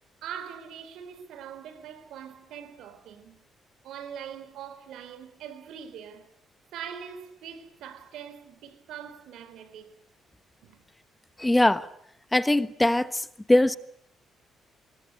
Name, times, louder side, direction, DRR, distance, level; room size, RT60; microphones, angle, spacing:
voice 1, 0.2-3.4 3.8-6.3 6.7-10.0 10.6-10.8, right 8 dB, 85° right, 4.0 m, -42 dB
voice 2, 11.4-11.9 12.3-13.8, left 1 dB, 10° left, 1.2 m, -22 dB
26.5 x 21.0 x 9.6 m
cardioid pair, 90°, 0 cm